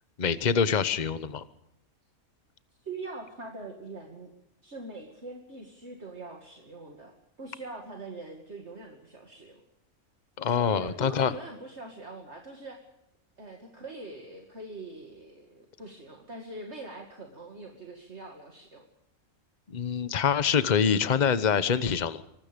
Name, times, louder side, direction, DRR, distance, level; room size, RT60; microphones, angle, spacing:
voice 1, 0.2-1.4 10.4-11.3 19.7-22.2, left 7 dB, 35° left, 13 dB, 1.0 m, -25 dB
voice 2, 2.8-4.3 4.6-9.6 10.5-12.8 13.4-18.8, right 2 dB, 50° right, 2 dB, 2.6 m, -43 dB
25.0 x 20.0 x 5.2 m, 0.83 s
omnidirectional pair, 1.5 m